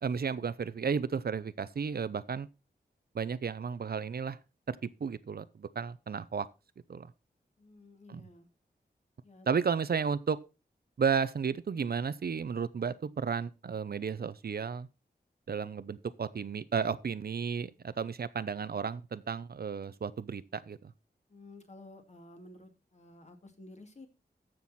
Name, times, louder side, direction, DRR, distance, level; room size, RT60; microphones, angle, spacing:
voice 1, 0.0-2.5 3.1-4.4 4.7-6.5 6.9-7.1 8.1-8.3 9.5-10.4 11.0-14.9 15.5-20.9, right 6 dB, 60° right, 0.6 m, -33 dB
voice 2, 7.6-8.5 9.2-9.5 21.3-24.1, left 2 dB, 40° left, 2.2 m, -52 dB
14.5 x 6.2 x 4.2 m
wide cardioid pair, 95°, 17 cm